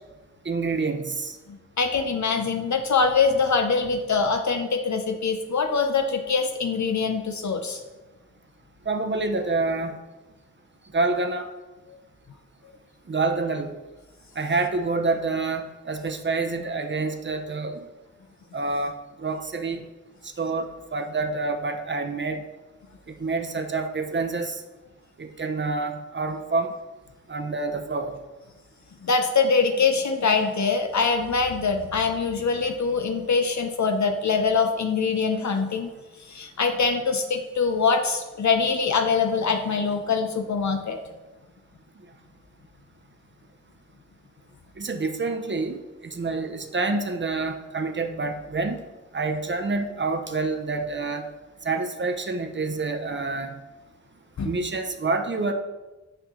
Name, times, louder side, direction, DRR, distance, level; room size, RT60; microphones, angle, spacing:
voice 1, 0.5-1.4 8.9-10.0 10.9-11.5 13.1-13.7 14.4-17.9 18.5-19.8 20.4-22.4 23.2-24.6 25.2-26.7 27.3-28.1 44.8-45.8 46.0-48.8 49.1-51.3 51.6-53.5 54.4-55.5, right 3 dB, 40° right, 6 dB, 0.8 m, -27 dB
voice 2, 1.5-7.8 11.9-12.0 29.0-35.9 36.2-41.0 54.4-54.5, left 5 dB, 70° left, 5 dB, 0.7 m, -23 dB
8.8 x 5.7 x 3.7 m, 1.2 s
wide cardioid pair, 105°, 30 cm